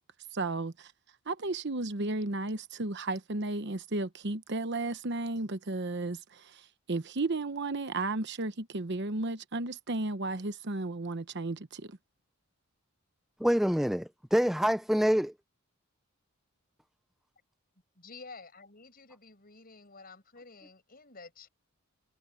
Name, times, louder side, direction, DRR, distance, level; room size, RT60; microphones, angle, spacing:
voice 1, 0.3-0.9 1.3-12.0, right 2 dB, 55° right, 1.0 m, -34 dB
voice 2, 13.4-15.3, equal, ahead, 0.3 m, -26 dB
voice 3, 17.9-21.5, left 4 dB, 45° left, 6.7 m, -51 dB
head